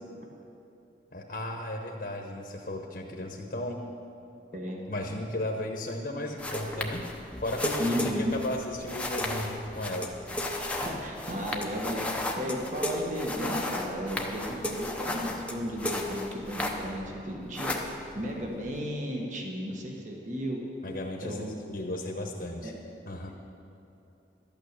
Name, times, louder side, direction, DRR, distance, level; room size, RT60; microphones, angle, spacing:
voice 1, 1.1-3.8 4.9-7.0 7.4-10.1 20.8-22.7 23.1-23.3, left 1 dB, 55° left, 1 dB, 1.1 m, -35 dB
sound 1, 6.4-17.1 17.3-18.8, left 1 dB, 5° left, 0.8 m, -34 dB
voice 2, 7.8-8.3 10.8-20.6 21.2-21.6 22.6-22.7, equal, 45° right, 0 dB, 1.5 m, -34 dB
12.5 x 9.0 x 6.8 m, 2.8 s
head